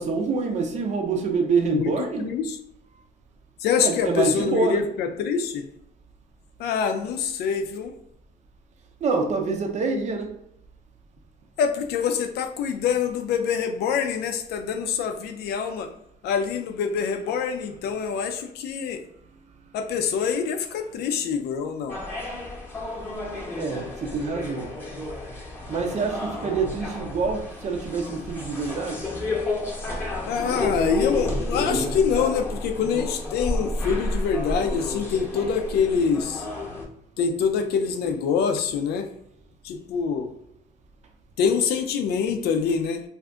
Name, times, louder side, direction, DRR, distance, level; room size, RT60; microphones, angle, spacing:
voice 1, 0.0-2.3 3.8-4.9 9.0-10.3 23.6-24.7 25.7-29.1, right 4 dB, 45° right, 4 dB, 0.6 m, -26 dB
voice 2, 1.7-2.6 3.6-5.7 6.6-7.9 11.6-15.9 16.2-19.0 19.7-22.0 30.2-36.5 37.2-39.1 39.6-40.3 41.4-43.0, left 6 dB, 75° left, 6 dB, 0.5 m, -25 dB
sound 1, 21.9-36.8, left 2 dB, 10° left, 0.9 m, -31 dB
2.6 x 2.4 x 3.3 m, 0.74 s
cardioid pair, 110°, 17 cm